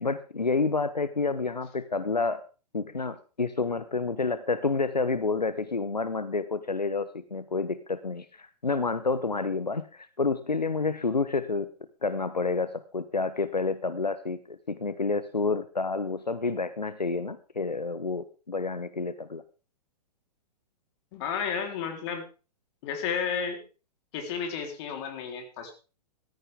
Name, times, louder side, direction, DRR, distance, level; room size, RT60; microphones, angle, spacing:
voice 1, 0.0-2.4 2.7-11.7 12.0-19.4, left 4 dB, 90° left, 13 dB, 0.9 m, -29 dB
voice 2, 21.1-22.3 22.8-23.6 24.1-25.7, left 6 dB, 45° left, 4 dB, 3.6 m, -32 dB
14.0 x 14.0 x 3.6 m, 0.34 s
figure-of-eight pair, 110°, 21 cm